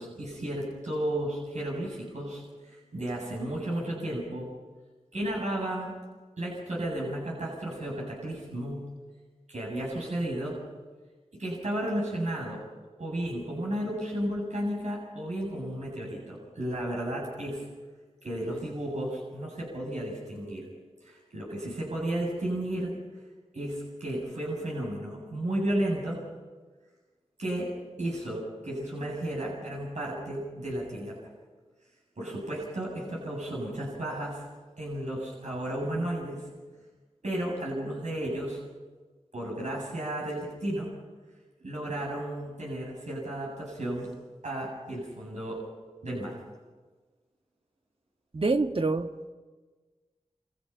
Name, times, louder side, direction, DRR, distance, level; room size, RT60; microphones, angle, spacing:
voice 1, 0.0-4.5 5.1-5.9 6.4-8.9 9.5-10.6 11.3-12.6 13.0-17.6 18.2-20.7 21.0-22.9 23.5-26.2 27.4-27.7 28.0-31.2 32.2-34.4 34.8-36.5 37.2-38.6 39.3-40.9 41.6-44.1 44.4-45.6 46.0-46.4, right 1 dB, 80° right, -3 dB, 7.6 m, -33 dB
voice 2, 48.3-49.3, right 3 dB, 50° right, 6 dB, 1.4 m, -27 dB
28.5 x 27.5 x 5.8 m, 1.4 s
wide cardioid pair, 55°, 12 cm